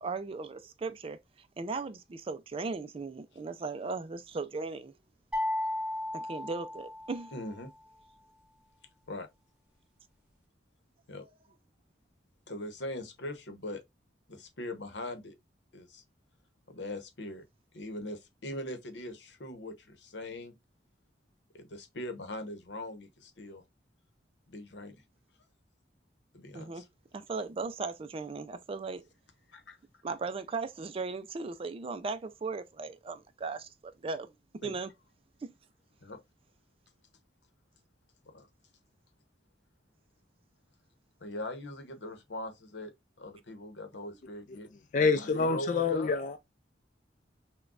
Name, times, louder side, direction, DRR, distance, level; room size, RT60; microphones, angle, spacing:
voice 1, 0.0-4.9 6.1-7.3 26.5-26.8 27.1-29.0 30.0-34.3 34.6-34.9 35.4-35.5, right 4 dB, 30° right, 0.4 m, -37 dB
sound 1, 5.3-7.5, left 1 dB, 5° right, 1.4 m, -34 dB
voice 2, 7.3-7.7 9.1-9.3 11.1-11.3 12.5-13.8 14.3-15.3 15.7-16.0 16.7-17.4 17.7-20.5 21.5-23.6 24.5-25.0 26.3-26.9 29.5-29.8 34.6-34.7 36.0-36.2 38.2-38.5 41.2-42.9 43.2-44.7 45.2-46.2, left 1 dB, 80° left, 0.9 m, -41 dB
voice 3, 44.9-46.4, left 4 dB, 45° left, 0.4 m, -27 dB
6.0 x 2.2 x 2.4 m
head